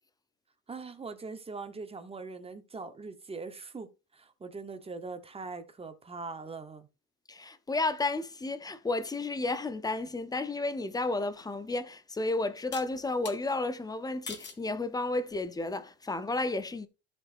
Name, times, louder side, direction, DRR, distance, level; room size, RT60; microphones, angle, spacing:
voice 1, 0.7-6.9, right 4 dB, 15° right, 1.0 m, -42 dB
voice 2, 7.3-16.9, left 2 dB, 10° left, 0.6 m, -32 dB
sound 1, 11.3-11.4 12.7-13.4 14.3-14.7 15.3-15.7, left 5 dB, 30° left, 1.7 m, -43 dB
15.0 x 5.1 x 2.5 m
cardioid pair, 145°, 35 cm